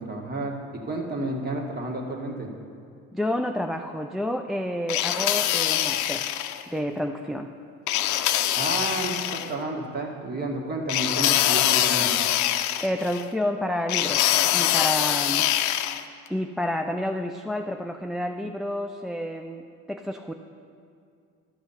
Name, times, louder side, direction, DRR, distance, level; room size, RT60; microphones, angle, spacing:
voice 1, 0.0-2.5 8.6-12.2, right 2 dB, 35° right, 1 dB, 1.8 m, -31 dB
voice 2, 3.1-6.3 6.7-7.5 12.8-15.5 16.3-20.3, left 1 dB, ahead, 4 dB, 0.4 m, -29 dB
sound 1, 4.9-6.6 7.9-9.5 10.9-13.2 13.9-16.0, left 12 dB, 75° left, 0.6 m, -24 dB
12.5 x 6.2 x 5.7 m, 2.4 s
supercardioid pair, 90°, 29 cm